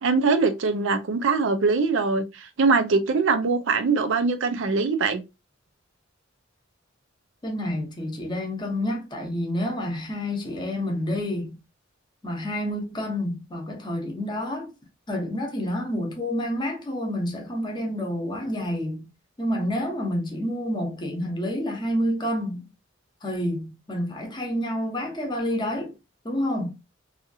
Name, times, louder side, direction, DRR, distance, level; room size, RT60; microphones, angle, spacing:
voice 1, 0.0-5.2, right 4 dB, 70° right, 0.5 m, -22 dB
voice 2, 7.4-11.6 12.2-14.7 15.1-19.1 19.4-22.7 23.2-25.9 26.2-26.7, equal, 25° left, 0.8 m, -28 dB
2.7 x 2.4 x 2.6 m
head